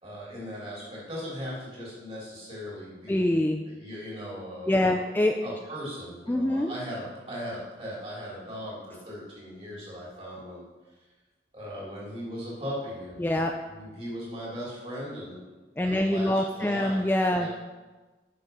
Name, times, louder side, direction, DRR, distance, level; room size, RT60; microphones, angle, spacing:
voice 1, 0.0-3.4 3.6-5.0 5.4-10.6 11.5-13.3 13.7-15.4 15.8-17.0 17.3-17.5, equal, 35° right, -6 dB, 3.2 m, -38 dB
voice 2, 3.1-3.7 4.7-5.4 6.3-6.7 13.2-13.5 15.8-17.5, left 1 dB, 10° left, 3 dB, 0.3 m, -25 dB
7.1 x 6.7 x 5.4 m, 1.3 s
head